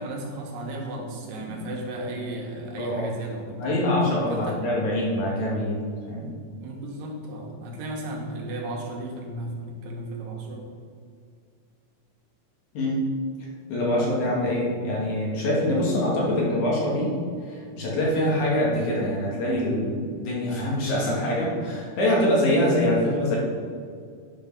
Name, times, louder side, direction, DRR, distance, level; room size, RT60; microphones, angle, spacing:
voice 1, 0.0-3.8 4.3-4.6 6.6-10.6, right 1 dB, 85° right, 0 dB, 3.0 m, -34 dB
voice 2, 2.8-3.1 3.6-5.8 6.1-6.3 12.7-13.0 13.7-17.1 17.5-23.4, left 1 dB, 65° left, -4 dB, 3.2 m, -24 dB
10.0 x 5.4 x 5.4 m, 2.2 s
omnidirectional pair, 3.9 m